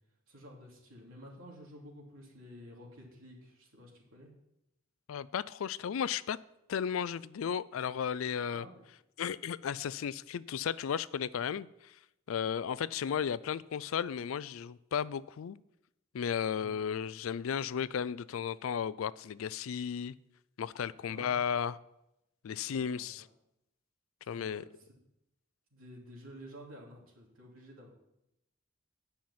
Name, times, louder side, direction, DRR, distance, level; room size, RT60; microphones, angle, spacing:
voice 1, 0.3-4.3 8.5-8.9 16.6-16.9 21.1-21.4 22.7-23.3 24.2-25.0 25.7-27.9, equal, 85° right, -1 dB, 3.0 m, -52 dB
voice 2, 5.1-6.4 6.7-8.7 9.2-11.9 12.3-15.6 16.1-20.1 20.6-21.8 22.4-23.3 24.3-24.6, left 7 dB, 90° left, 18 dB, 0.4 m, -34 dB
10.5 x 5.7 x 7.4 m, 0.87 s
head